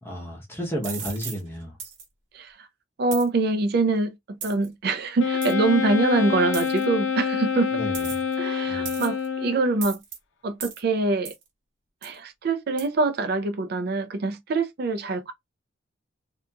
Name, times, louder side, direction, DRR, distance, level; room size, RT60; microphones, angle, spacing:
voice 1, 0.0-1.7 7.8-8.1 8.7-9.0, equal, 10° left, 0.7 m, -32 dB
sound 1, 0.8-1.4 1.8-2.0 3.1-3.3 4.4-4.7 5.4-5.5 6.5-6.8 7.9-8.3 8.9-9.3 9.8-10.2 10.6-10.8 11.3-11.4 12.0-12.2 12.8-12.9, right 6 dB, 80° right, 1.0 m, -36 dB
voice 2, 2.3-2.7 3.0-7.7 8.4-10.0 10.4-11.3 12.0-15.3, right 3 dB, 55° right, 0.4 m, -24 dB
Wind instrument woodwind instrument, 5.2-9.8, left 6 dB, 75° left, 0.5 m, -27 dB
2.8 x 2.5 x 2.2 m
head